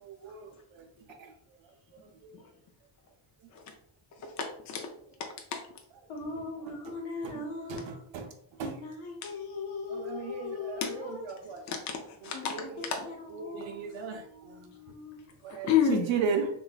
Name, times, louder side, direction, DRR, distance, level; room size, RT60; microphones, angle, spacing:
voice 1, 0.0-0.5 0.8-0.9 2.2-2.3 7.7-7.8 8.1-8.3 8.6-8.7 9.9-11.6 12.5-12.7 13.3-14.7 15.4-16.5, right 6 dB, 70° right, 5 dB, 0.6 m, -35 dB
voice 2, 4.2-4.9 5.5-5.6 9.2-9.3 10.8-10.9 11.7-12.6 12.8-13.1 15.6-16.1, left 8 dB, 40° left, 3 dB, 0.4 m, -29 dB
voice 3, 6.1-8.0 8.6-11.3 12.3-15.3, left 4 dB, 85° left, 0 dB, 1.0 m, -40 dB
3.1 x 2.3 x 2.3 m, 0.67 s
cardioid pair, 75°, 48 cm